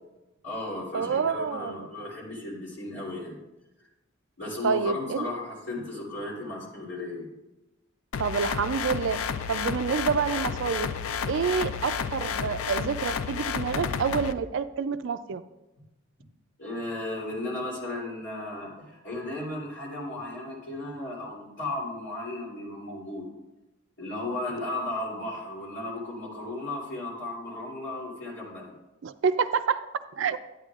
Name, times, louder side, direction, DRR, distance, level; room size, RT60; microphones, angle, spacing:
voice 1, 0.4-3.4 4.4-7.3 16.6-23.3 24.0-28.7, left 2 dB, 55° left, -4 dB, 3.0 m, -35 dB
voice 2, 0.9-1.9 4.6-5.3 8.2-9.2 9.5-10.9 11.3-15.4 29.0-29.8 30.2-30.4, right 6 dB, 60° right, 11 dB, 0.3 m, -28 dB
sound 1, 8.1-14.3, left 6 dB, 80° left, 0.4 m, -31 dB
11.5 x 8.9 x 2.4 m, 1.0 s
head